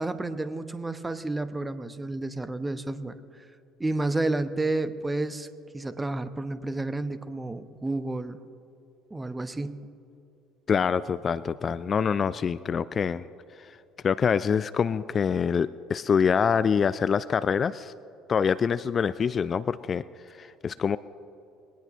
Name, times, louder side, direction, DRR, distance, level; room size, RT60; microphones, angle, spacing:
voice 1, 0.0-3.5 3.8-5.5 5.7-8.4 9.1-9.9, right 2 dB, 15° right, 12 dB, 0.8 m, -31 dB
voice 2, 10.7-13.2 13.6-13.7 14.0-17.9 18.3-20.0 20.4-21.0, left 6 dB, 35° left, 16 dB, 0.3 m, -25 dB
21.0 x 18.5 x 2.5 m, 2.8 s
figure-of-eight pair, 60°, 0 cm